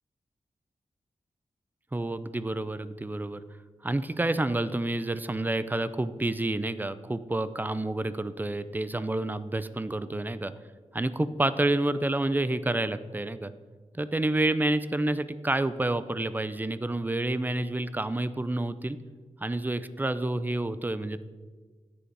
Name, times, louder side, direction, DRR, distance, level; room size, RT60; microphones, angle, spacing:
voice 1, 1.9-3.4 3.8-10.5 10.9-13.5 13.9-19.0 19.4-21.3, right 2 dB, 15° right, 14 dB, 0.4 m, -29 dB
9.9 x 8.5 x 5.4 m, 1.4 s
wide cardioid pair, 130°, 13 cm